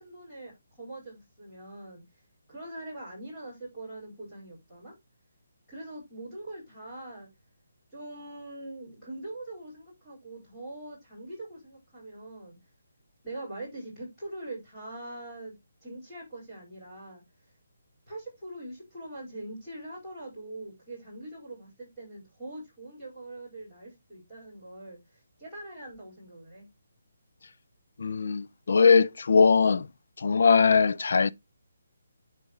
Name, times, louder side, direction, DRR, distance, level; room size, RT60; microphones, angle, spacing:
voice 1, 0.0-2.0 2.5-4.9 5.7-7.3 7.9-12.6 13.2-15.5 15.8-17.2 18.1-26.7, right 1 dB, 5° left, 4.6 m, -43 dB
voice 2, 28.0-29.9 30.2-31.3, left 5 dB, 50° left, 0.4 m, -21 dB
10.5 x 4.1 x 3.1 m
hypercardioid pair, 180°, 0 cm